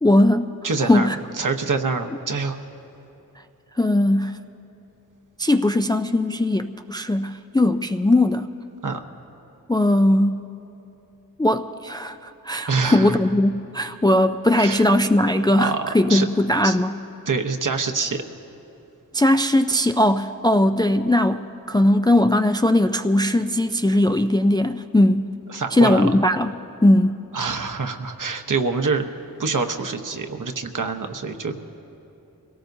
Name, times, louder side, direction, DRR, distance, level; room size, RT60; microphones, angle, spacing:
voice 1, 0.0-0.5 0.9-1.2 3.8-4.3 5.4-8.5 9.7-10.4 11.4-17.0 19.1-21.4 21.7-25.3 25.7-26.5 26.8-27.1, left 1 dB, 10° left, 8 dB, 0.3 m, -19 dB
voice 2, 0.6-1.1 1.4-2.6 8.8-9.0 12.7-13.2 14.5-14.8 15.6-16.3 16.6-16.8 17.3-18.2 25.5-26.1 27.3-29.1 29.4-31.6, right 4 dB, 55° right, 5 dB, 0.9 m, -25 dB
24.5 x 17.5 x 2.7 m, 2.9 s
cardioid pair, 45°, 37 cm